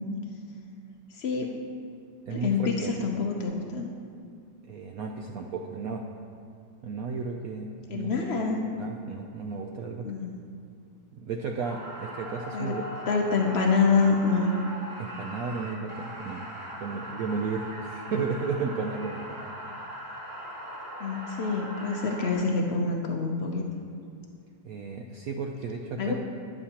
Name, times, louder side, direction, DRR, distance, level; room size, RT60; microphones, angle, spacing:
voice 1, 1.1-1.5 2.3-3.9 7.9-8.6 10.0-10.3 12.5-12.7 13.1-14.5 21.0-23.6 26.0-26.1, left 4 dB, 85° left, 1 dB, 0.5 m, -26 dB
voice 2, 2.3-2.9 4.7-6.1 6.8-8.1 8.7-10.1 11.1-12.8 15.0-16.5 16.8-19.4 24.6-26.1, right 4 dB, 80° right, 2 dB, 0.8 m, -33 dB
sound 1, 11.6-22.3, right 1 dB, 15° right, 1.7 m, -40 dB
12.0 x 10.0 x 2.9 m, 2.3 s
omnidirectional pair, 2.1 m